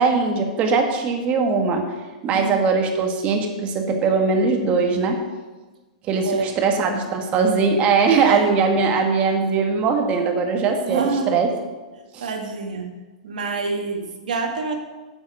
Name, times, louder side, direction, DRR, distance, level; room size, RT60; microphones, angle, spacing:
voice 1, 0.0-1.8 2.2-5.2 6.0-11.5 12.1-12.3, right 4 dB, 30° right, 3 dB, 1.7 m, -20 dB
voice 2, 2.3-2.6 6.2-6.5 8.2-8.5 10.9-11.3 12.2-12.9 13.2-14.7, right 4 dB, 80° right, 3 dB, 1.9 m, -26 dB
9.6 x 7.2 x 5.0 m, 1.2 s
hypercardioid pair, 135°, 4 cm